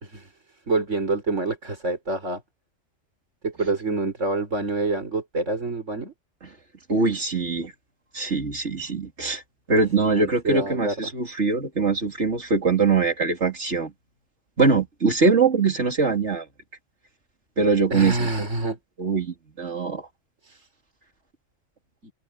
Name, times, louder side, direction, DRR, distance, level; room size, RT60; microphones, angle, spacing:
voice 1, 0.0-0.3 0.7-2.4 3.4-6.1 10.0-11.1 17.9-18.8 20.4-20.6 22.0-22.1, right 3 dB, 90° right, 5.0 m, -27 dB
voice 2, 6.9-7.7 8.1-9.4 9.7-13.9 14.6-16.5 17.6-18.5 19.0-20.0, right 4 dB, 70° right, 3.5 m, -22 dB
omnidirectional pair, 1.2 m